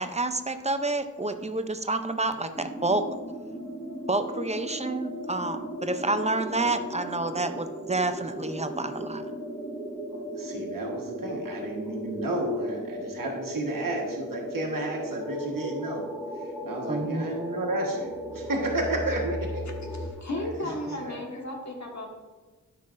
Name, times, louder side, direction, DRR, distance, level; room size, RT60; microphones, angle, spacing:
voice 1, 0.0-3.0 4.1-9.2 16.9-17.3, right 2 dB, 20° right, 8 dB, 0.5 m, -29 dB
sound 1, 2.5-20.1, equal, ahead, 0.9 m, -36 dB
voice 2, 10.1-16.1 16.3-19.6 20.4-21.2, right 1 dB, 85° right, -1 dB, 1.4 m, -32 dB
voice 3, 19.9-22.1, left 1 dB, 60° left, 0 dB, 1.5 m, -34 dB
12.5 x 5.7 x 2.5 m, 1.3 s
wide cardioid pair, 90°, 32 cm